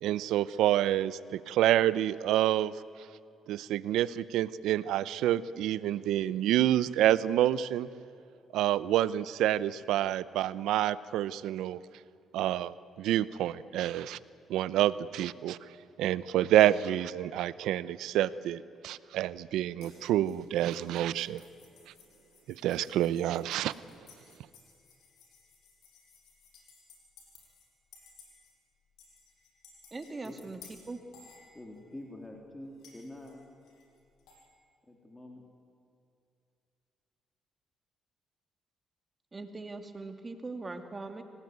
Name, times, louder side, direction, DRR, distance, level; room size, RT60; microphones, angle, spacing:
voice 1, 0.0-2.8 3.5-7.9 8.5-11.8 12.3-14.2 14.5-15.6 16.0-21.4 22.5-23.7, right 12 dB, 90° right, 17 dB, 0.6 m, -28 dB
sound 1, 19.8-27.7 27.9-28.5 29.0-32.0 32.8-34.4, left 5 dB, 85° left, 6.5 m, -58 dB
voice 2, 29.9-30.6 30.9-31.0 39.3-41.2, right 3 dB, 25° right, 7 dB, 2.3 m, -40 dB
voice 3, 31.5-33.5 34.8-35.4, left 1 dB, 15° left, 0 dB, 3.4 m, -46 dB
26.5 x 18.0 x 9.5 m, 2.5 s
cardioid pair, 90°, 0 cm